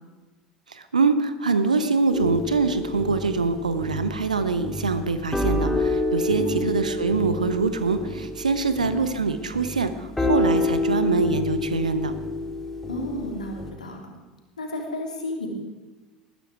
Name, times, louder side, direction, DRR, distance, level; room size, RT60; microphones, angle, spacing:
voice 1, 0.7-12.1, right 4 dB, 80° right, 11 dB, 1.1 m, -24 dB
sound 1, 2.1-13.7, left 2 dB, 10° left, 2.5 m, -28 dB
voice 2, 6.3-6.6 8.7-8.8 12.9-14.0 14.6-15.5, left 1 dB, 80° left, 1 dB, 3.2 m, -32 dB
20.0 x 14.0 x 4.7 m, 1.2 s
figure-of-eight pair, 70°, 4 cm